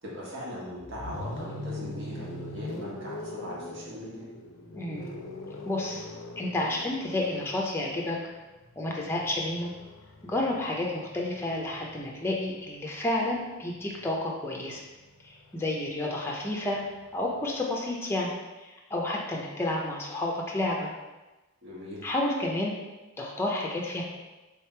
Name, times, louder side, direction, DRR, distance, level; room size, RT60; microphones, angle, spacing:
voice 1, 0.0-4.3 21.6-22.0, equal, 60° right, -5 dB, 1.4 m, -40 dB
sound 1, 0.8-12.7 14.0-17.6, left 2 dB, 70° left, 0.6 m, -43 dB
voice 2, 4.7-5.1 5.6-6.1 6.4-8.2 8.8-9.7 10.2-14.8 15.2-16.8 17.1-18.3 18.6-20.9 22.0-22.7 23.2-24.0, left 1 dB, 10° left, -2 dB, 0.5 m, -30 dB
3.5 x 3.3 x 4.4 m, 1.1 s
head